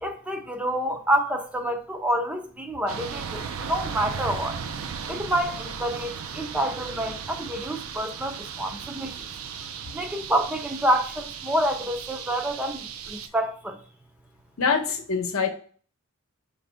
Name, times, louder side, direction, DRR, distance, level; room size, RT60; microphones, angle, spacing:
voice 1, 0.0-4.6 5.1-9.3 9.9-13.8, right 1 dB, 5° right, 0.4 m, -28 dB
sound 1, 2.9-13.3, right 6 dB, 70° right, 0.4 m, -36 dB
voice 2, 14.6-15.5, left 5 dB, 70° left, 0.8 m, -24 dB
5.0 x 2.6 x 3.3 m
head